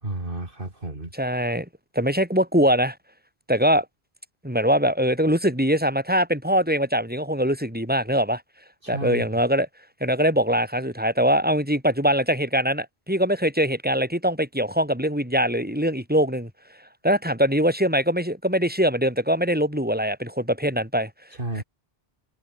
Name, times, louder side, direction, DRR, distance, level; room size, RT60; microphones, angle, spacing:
voice 1, 0.0-1.1 8.8-9.2 21.4-21.6, right 2 dB, 60° right, 4.2 m, -31 dB
voice 2, 1.1-1.7 1.9-2.9 3.5-3.8 4.4-8.4 8.9-9.7 10.0-16.5 17.0-21.1, equal, 10° right, 8.0 m, -22 dB
omnidirectional pair, 1.0 m